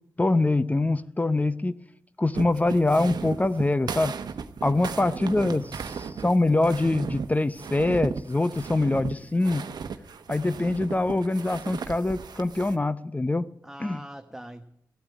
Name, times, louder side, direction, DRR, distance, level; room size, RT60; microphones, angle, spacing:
voice 1, 0.2-1.7 2.2-4.1 4.6-5.6 6.2-9.7 10.3-13.5 13.8-14.0, left 2 dB, 20° left, 15 dB, 0.7 m, -24 dB
sound 1, 2.3-12.8, right 6 dB, 70° right, 1.0 m, -36 dB
voice 2, 4.6-5.7 13.6-14.6, right 1 dB, 5° right, 6 dB, 1.0 m, -43 dB
15.5 x 8.7 x 9.5 m, 0.74 s
cardioid pair, 50°, 7 cm